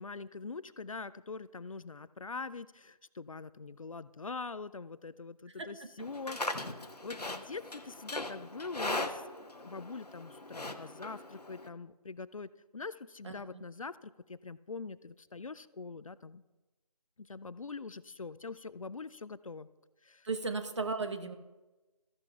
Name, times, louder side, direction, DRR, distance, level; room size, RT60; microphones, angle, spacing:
voice 1, 0.0-6.7 7.0-14.0 14.3-16.4 17.3-19.7 20.1-20.2, left 4 dB, 60° left, 16 dB, 0.4 m, -43 dB
voice 2, 5.6-5.9 13.2-13.6 20.2-21.4, right 3 dB, 50° right, 7 dB, 1.0 m, -36 dB
Livestock farm animals working animals, 6.0-11.7, left 2 dB, 85° left, 1.0 m, -39 dB
14.5 x 11.5 x 2.3 m, 1.1 s
figure-of-eight pair, 160°, 20 cm